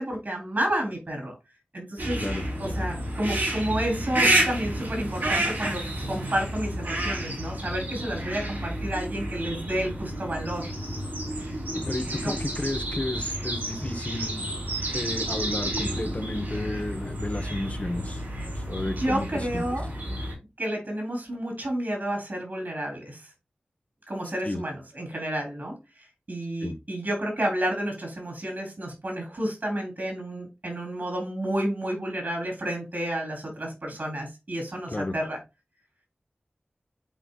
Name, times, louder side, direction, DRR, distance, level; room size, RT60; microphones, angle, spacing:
voice 1, 0.0-1.3 1.7-2.2 2.6-10.7 12.2-12.4 19.0-19.9 20.6-23.2 24.1-25.8 26.3-35.4, right 1 dB, 60° right, 4.1 m, -30 dB
sound 1, 2.0-20.3, right 1 dB, 80° right, 4.6 m, -30 dB
voice 2, 11.7-14.6 14.9-18.2 18.5-19.6 24.4-24.6 26.6-26.8 34.9-35.2, left 2 dB, 45° left, 1.2 m, -32 dB
10.5 x 4.5 x 2.4 m
wide cardioid pair, 55°, 3 cm